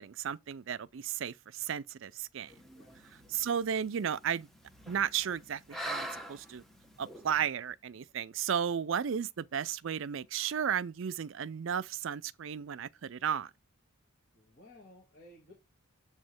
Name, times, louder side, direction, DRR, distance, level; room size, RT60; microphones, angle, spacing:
voice 1, 0.0-2.5 3.3-4.5 4.9-6.6 7.0-13.5, right 8 dB, 60° right, 0.4 m, -34 dB
sound 1, 2.5-7.5, equal, ahead, 0.9 m, -45 dB
voice 2, 14.3-15.5, left 1 dB, 40° left, 1.8 m, -56 dB
7.8 x 3.2 x 5.2 m
head